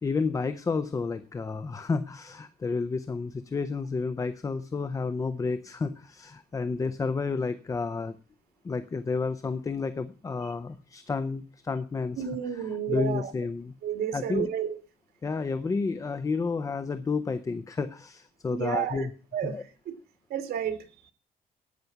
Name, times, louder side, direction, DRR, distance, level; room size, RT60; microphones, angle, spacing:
voice 1, 0.0-8.2 8.6-12.3 12.5-13.7 14.1-14.5 15.2-19.1 19.4-19.6, left 4 dB, 20° left, 11 dB, 0.6 m, -31 dB
voice 2, 12.2-13.3 13.8-14.8 18.5-19.6 19.9-20.0 20.3-20.8, right 9 dB, 85° right, 8 dB, 2.4 m, -31 dB
13.5 x 9.5 x 5.9 m, 0.36 s
cardioid pair, 175°, 16 cm